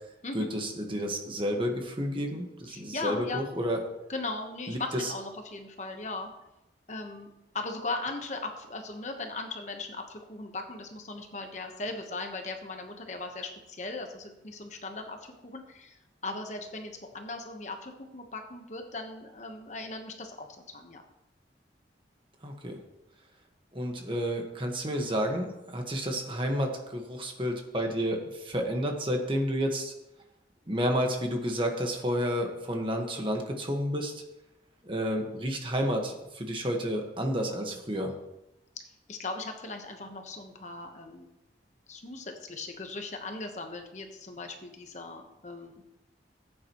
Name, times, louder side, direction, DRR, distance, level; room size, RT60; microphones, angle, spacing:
voice 1, 0.3-3.8 4.7-5.1 22.4-22.8 23.7-29.9 30.7-34.1 34.8-38.1, equal, 30° right, 2 dB, 1.4 m, -30 dB
voice 2, 2.7-3.5 4.1-6.3 6.9-7.3 7.5-20.5 20.7-21.0 39.1-41.3 41.9-45.8, left 3 dB, 40° left, 4 dB, 1.1 m, -38 dB
16.0 x 8.7 x 3.1 m, 0.93 s
head